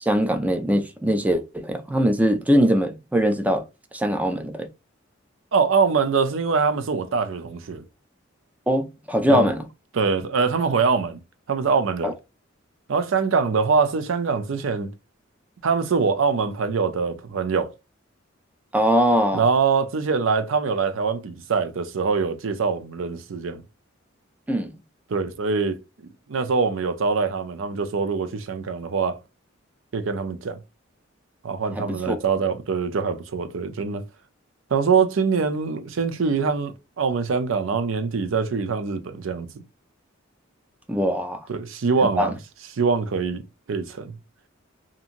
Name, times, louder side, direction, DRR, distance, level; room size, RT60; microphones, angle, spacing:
voice 1, 0.0-3.6 3.9-4.7 8.7-9.7 12.0-12.1 18.7-19.4 24.5-24.7 31.8-32.2 40.9-41.5 42.2-42.3, equal, 5° right, 0.4 m, -22 dB
voice 2, 5.5-7.8 9.3-9.5 9.9-11.2 11.5-12.1 12.9-14.9 15.6-17.7 19.3-23.6 25.1-25.8 26.3-29.2 29.9-30.6 31.4-34.0 34.7-39.5 41.5-42.4 42.7-44.1, right 5 dB, 75° right, 0.5 m, -23 dB
2.8 x 2.6 x 2.5 m
head